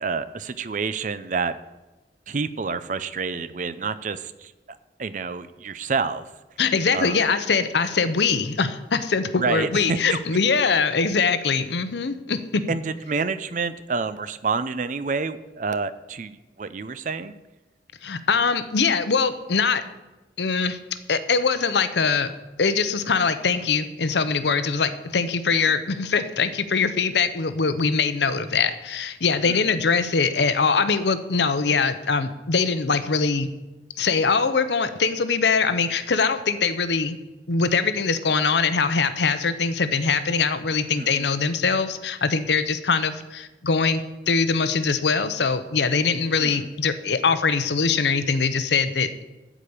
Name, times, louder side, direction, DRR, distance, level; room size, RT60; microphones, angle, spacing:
voice 1, 0.0-1.6 2.3-4.5 5.0-6.3 6.9-7.2 9.4-10.2 12.7-17.3 29.5-29.7 41.0-41.3 46.4-46.7, right 4 dB, 45° right, 14 dB, 0.5 m, -28 dB
voice 2, 6.6-12.6 18.0-19.8 20.4-20.8 21.1-22.3 22.6-33.5 34.0-37.2 37.5-44.0 44.3-49.2, left 5 dB, 80° left, 11 dB, 0.8 m, -22 dB
12.0 x 5.1 x 8.6 m, 1.1 s
head